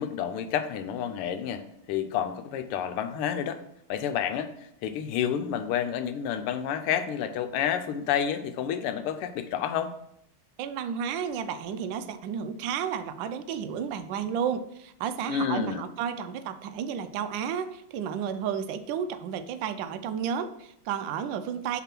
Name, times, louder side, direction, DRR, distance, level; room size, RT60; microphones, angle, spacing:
voice 1, 0.0-3.6 3.9-9.9 15.3-15.8, left 9 dB, 90° left, 9 dB, 1.6 m, -30 dB
voice 2, 10.6-21.8, right 8 dB, 75° right, 10 dB, 1.1 m, -32 dB
5.9 x 3.6 x 5.8 m, 0.75 s
omnidirectional pair, 2.4 m